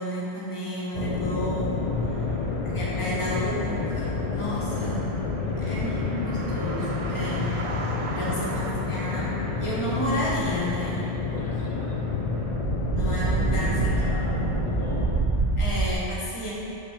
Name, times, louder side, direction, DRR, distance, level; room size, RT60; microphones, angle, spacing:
voice 1, 0.0-2.2 2.6-5.1 5.6-7.6 8.1-11.1 12.9-13.9 14.3-14.6 15.6-16.5, equal, 25° left, -6 dB, 1.4 m, -32 dB
sound 1, 0.9-15.2, left 4 dB, 55° left, 0.4 m, -29 dB
sound 2, 1.8-3.9 4.7-10.7 12.3-15.9, right 3 dB, 45° right, 0.5 m, -30 dB
voice 2, 1.9-2.5 5.4-6.6 8.1-8.5 11.2-15.7, right 1 dB, 20° right, -10 dB, 1.5 m, -44 dB
7.2 x 5.9 x 5.0 m, 2.8 s
omnidirectional pair, 1.2 m